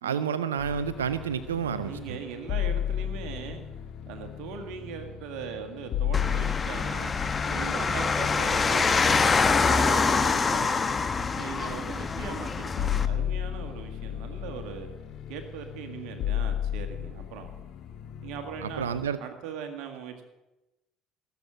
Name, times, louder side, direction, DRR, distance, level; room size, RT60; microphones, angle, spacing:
voice 1, 0.0-2.2 18.6-19.2, right 8 dB, 90° right, 14 dB, 0.4 m, -30 dB
sound 1, 0.6-19.1, left 10 dB, 60° left, 2.0 m, -34 dB
voice 2, 1.8-3.6 4.1-7.1 7.4-10.7 11.3-14.9 15.3-17.5 18.2-18.9 19.2-20.2, right 7 dB, 70° right, 5 dB, 1.9 m, -40 dB
sound 2, 6.1-13.1, left 4 dB, 30° left, 1.1 m, -25 dB
18.0 x 8.2 x 7.6 m, 1.0 s
hypercardioid pair, 60°, 0 cm